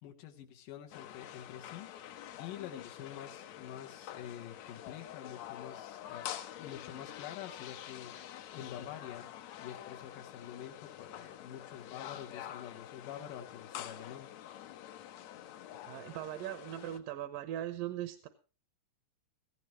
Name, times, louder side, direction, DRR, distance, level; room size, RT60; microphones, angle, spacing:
voice 1, 0.0-9.3 9.6-14.3, left 10 dB, 85° left, 2 dB, 2.9 m, -47 dB
sound 1, 0.9-17.0, left 11 dB, 70° left, 1.8 m, -47 dB
voice 2, 15.9-18.3, right 12 dB, 90° right, 10 dB, 2.6 m, -39 dB
17.0 x 15.0 x 3.1 m, 0.34 s
omnidirectional pair, 3.8 m